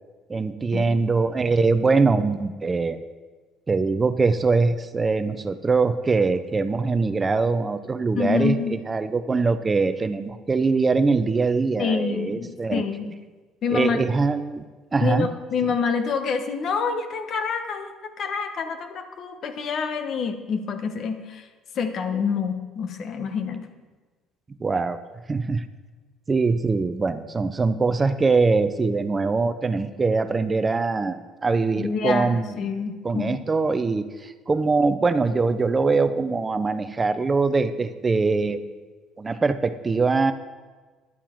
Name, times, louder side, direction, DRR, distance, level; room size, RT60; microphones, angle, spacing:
voice 1, 0.3-3.0 3.7-12.8 13.7-14.7 14.9-15.3 24.6-25.0 25.3-25.6 26.3-32.6 33.0-38.7 39.2-40.3, right 4 dB, 25° right, 11 dB, 0.5 m, -22 dB
voice 2, 8.2-8.7 11.8-13.1 13.6-14.0 15.0-21.5 21.7-23.7 31.8-33.4, left 6 dB, 55° left, 8 dB, 1.0 m, -27 dB
11.0 x 7.1 x 4.4 m, 1.3 s
supercardioid pair, 90°, 0 cm